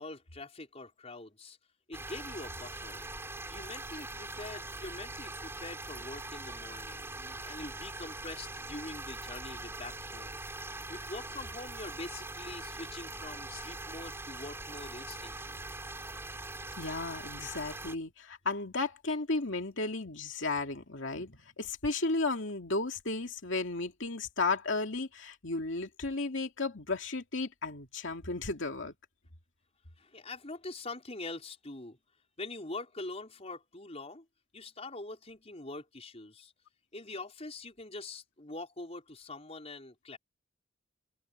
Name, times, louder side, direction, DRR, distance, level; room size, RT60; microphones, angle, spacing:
voice 1, 0.0-1.6 1.9-3.1 3.5-10.4 10.9-15.6 30.0-32.0 32.4-34.2 34.5-36.5 36.9-40.2, left 2 dB, 30° left, 5.0 m, -44 dB
sound 1, 1.9-18.0, right 2 dB, 10° right, 4.7 m, -42 dB
voice 2, 16.8-28.9, left 3 dB, 65° left, 2.6 m, -34 dB
open air
head